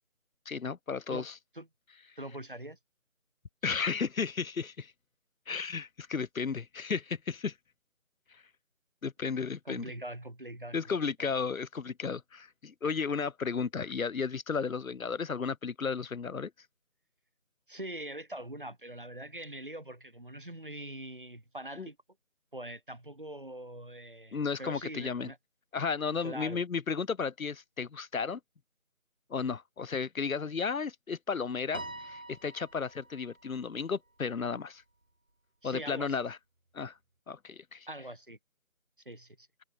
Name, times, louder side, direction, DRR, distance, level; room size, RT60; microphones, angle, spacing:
voice 1, 0.5-1.3 3.6-4.9 5.5-7.5 8.3-8.4 9.0-9.8 10.7-16.5 21.8-21.9 24.3-25.3 25.7-28.4 29.3-34.8 35.6-36.4 36.7-36.9 37.3-37.9, left 5 dB, 85° left, 0.8 m, -34 dB
voice 2, 2.2-2.8 3.7-3.8 9.6-11.3 17.7-22.0 22.5-25.4 26.2-26.6 35.6-36.2 37.9-38.4 39.0-39.5, right 1 dB, 40° right, 1.2 m, -43 dB
Piano, 31.7-34.2, right 2 dB, 75° right, 3.8 m, -46 dB
figure-of-eight pair, 175°, 41 cm